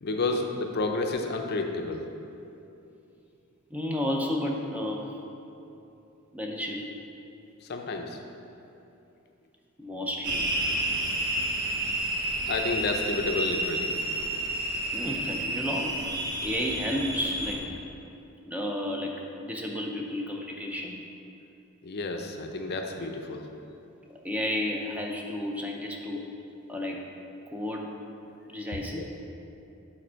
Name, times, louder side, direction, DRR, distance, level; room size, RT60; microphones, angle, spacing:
voice 1, 0.0-2.1 7.6-8.2 12.5-13.9 21.8-23.5 28.7-29.0, left 3 dB, 45° left, 4 dB, 0.5 m, -30 dB
voice 2, 3.7-5.1 6.3-7.0 9.8-10.5 14.9-16.0 16.4-17.8 18.4-21.0 24.2-26.2 26.7-27.1 27.5-27.9 28.5-29.0, left 1 dB, 5° right, 0 dB, 0.5 m, -32 dB
sound 1, 10.2-17.6, right 1 dB, 50° right, 0.8 m, -30 dB
7.5 x 4.3 x 4.4 m, 2.8 s
head